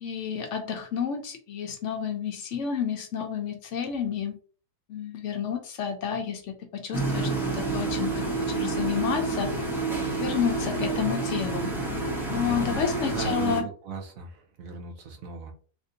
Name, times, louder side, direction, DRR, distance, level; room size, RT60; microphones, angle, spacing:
voice 1, 0.0-4.4 4.9-9.5 10.2-11.7 12.3-13.6, left 7 dB, 70° left, 5 dB, 0.7 m, -30 dB
sound 1, 6.9-13.6, right 3 dB, ahead, 0.6 m, -29 dB
voice 2, 13.1-15.5, right 5 dB, 65° right, 2 dB, 1.0 m, -38 dB
3.5 x 2.5 x 2.6 m, 0.41 s
omnidirectional pair, 1.7 m